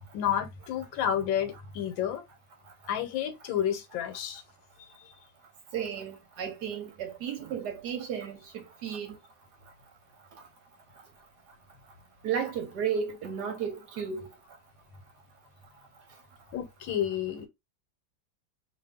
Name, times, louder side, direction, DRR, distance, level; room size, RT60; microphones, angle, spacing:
voice 1, 0.1-2.2 2.9-4.4 4.8-5.1 16.5-17.5, left 9 dB, 80° left, 1.4 m, -30 dB
voice 2, 5.7-9.2 12.2-14.2, right 7 dB, 65° right, 1.1 m, -33 dB
2.9 x 2.6 x 3.4 m
omnidirectional pair, 2.1 m